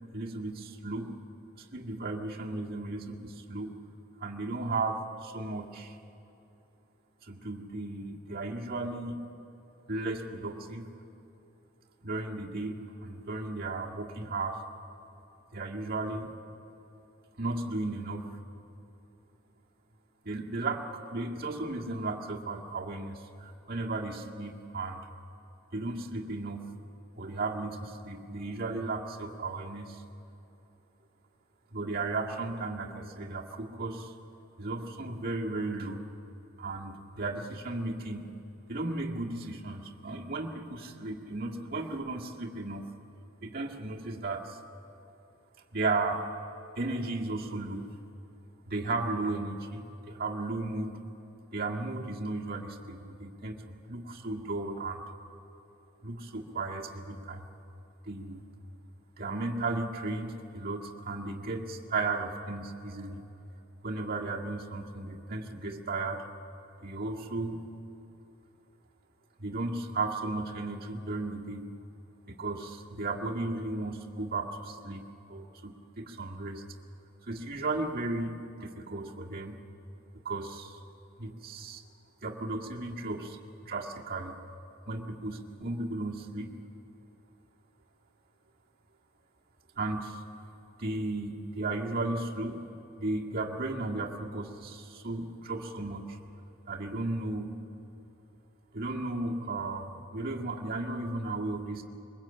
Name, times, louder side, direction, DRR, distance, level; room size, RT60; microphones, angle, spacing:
voice 1, 0.1-1.1 1.7-3.8 4.2-6.0 7.3-9.3 9.9-10.9 12.0-14.6 15.5-16.4 17.4-18.3 20.2-25.0 25.7-26.7 27.2-30.0 31.7-34.1 34.6-36.1 36.6-38.3 38.7-42.9 43.4-44.6 45.7-46.3 46.8-47.9 48.7-51.0 51.5-55.0 56.0-57.5 58.0-58.4 59.2-63.2 63.8-66.2 66.8-67.7 69.4-71.7 72.3-76.6 77.2-79.6 80.2-80.8 81.2-81.8 82.2-83.4 83.6-84.4 84.9-86.6 89.8-90.2 90.8-92.6 93.0-96.2 96.7-97.5 98.7-101.8, right 2 dB, 45° right, -1 dB, 1.8 m, -35 dB
22.5 x 21.0 x 8.8 m, 2.9 s
head